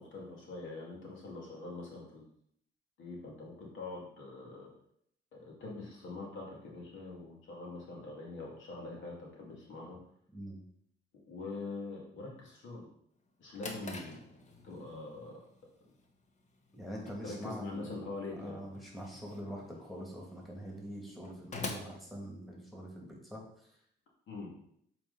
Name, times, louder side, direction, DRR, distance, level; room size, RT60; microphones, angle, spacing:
voice 1, 0.0-2.2 3.0-4.7 5.3-10.0 11.3-12.9 13.4-14.2 14.6-15.3 17.2-18.6 24.3-24.5, left 3 dB, 75° left, -2 dB, 2.2 m, -44 dB
Drawer open or close, 13.2-22.9, left 3 dB, 35° left, 1.2 m, -48 dB
voice 2, 16.7-17.9 18.4-23.7, equal, ahead, -2 dB, 2.4 m, -44 dB
7.1 x 4.5 x 4.0 m, 0.67 s
cardioid pair, 90°, 20 cm